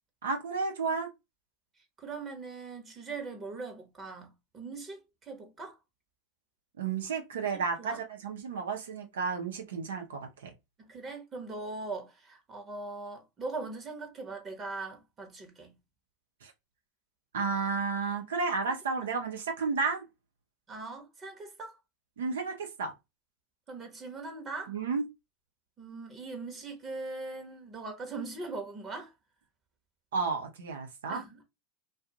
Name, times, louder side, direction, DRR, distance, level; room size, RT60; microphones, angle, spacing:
voice 1, 0.2-1.1 6.8-10.5 16.4-16.5 17.3-20.0 22.2-22.9 24.7-25.0 30.1-31.2, right 4 dB, 80° right, 0.8 m, -32 dB
voice 2, 2.0-5.8 7.8-8.0 10.8-15.8 20.7-21.8 23.7-24.7 25.8-29.1 31.1-31.4, right 3 dB, 30° right, 1.0 m, -40 dB
2.5 x 2.5 x 2.8 m
hypercardioid pair, 95°, 0 cm